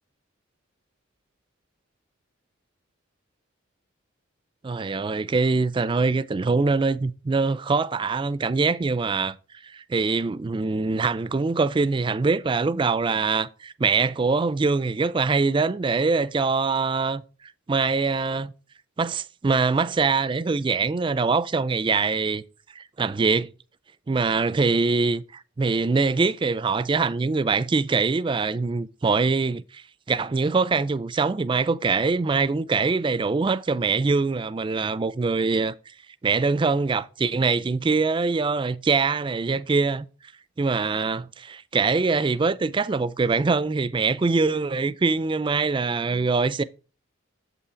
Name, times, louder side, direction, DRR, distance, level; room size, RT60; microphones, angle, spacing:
voice 1, 4.6-9.4 9.6-17.2 17.7-18.5 19.0-22.4 22.8-23.5 24.1-35.9 36.2-40.1 40.6-46.6, right 4 dB, 25° right, 0.3 m, -23 dB
7.5 x 5.5 x 5.0 m
head